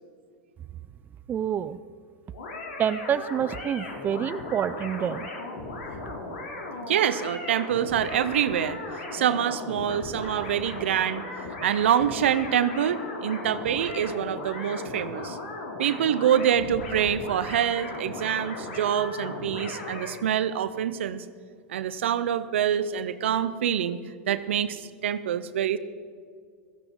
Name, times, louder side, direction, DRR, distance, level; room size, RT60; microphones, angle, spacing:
voice 1, 1.3-1.8 2.8-5.3, right 9 dB, 30° right, 13 dB, 0.5 m, -27 dB
sound 1, 2.3-20.1, left 2 dB, 80° left, 3.3 m, -37 dB
voice 2, 6.9-11.2 11.6-15.4 15.8-21.2 21.7-24.0 24.3-25.8, right 9 dB, 80° right, 13 dB, 0.8 m, -26 dB
16.5 x 14.5 x 3.9 m, 2.1 s
hypercardioid pair, 100°, 6 cm